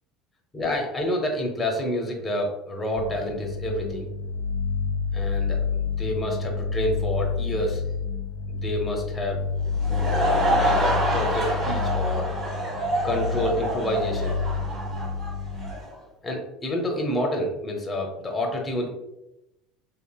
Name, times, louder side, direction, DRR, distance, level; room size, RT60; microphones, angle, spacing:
voice 1, 0.5-4.1 5.1-7.8 8.5-9.4 10.0-10.2 10.5-12.3 13.0-14.4 16.2-18.9, left 1 dB, 15° left, 1 dB, 0.5 m, -28 dB
sound 1, 3.0-15.7, left 5 dB, 65° left, 0.3 m, -29 dB
Laughter / Crowd, 9.6-15.9, right 1 dB, 35° right, 1.1 m, -27 dB
2.8 x 2.6 x 2.2 m, 0.90 s
cardioid pair, 140°, 0 cm